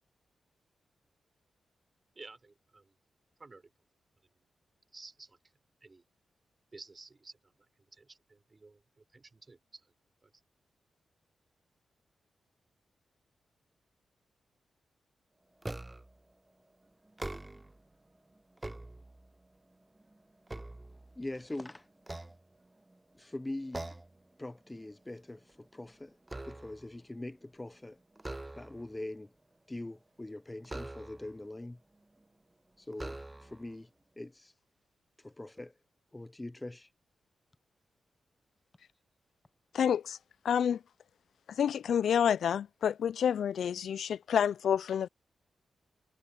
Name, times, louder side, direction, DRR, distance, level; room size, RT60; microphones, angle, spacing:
voice 1, 2.2-3.0 3.4-3.7 4.9-5.4 5.8-6.0 6.7-9.9 10.2-10.3, right 3 dB, 40° right, 5.6 m, -53 dB
sound 1, 15.6-16.2 17.0-17.8 18.4-19.5 20.0-21.5 22.0-23.0 23.7-24.2 24.6-24.9 25.2-26.9 28.2-29.0 30.6-31.4 32.2-32.3 32.9-33.7, right 2 dB, 20° right, 1.1 m, -43 dB
voice 2, 21.2-21.9 23.2-23.9 24.4-26.2 26.4-28.0 28.6-29.3 29.7-31.8 32.8-33.9 34.2-34.5 35.2-35.7 36.1-36.9, left 1 dB, 20° left, 0.9 m, -42 dB
voice 3, 39.7-40.2 40.4-40.8 41.6-45.1, left 8 dB, 75° left, 0.4 m, -28 dB
supercardioid pair, 40°, 0 cm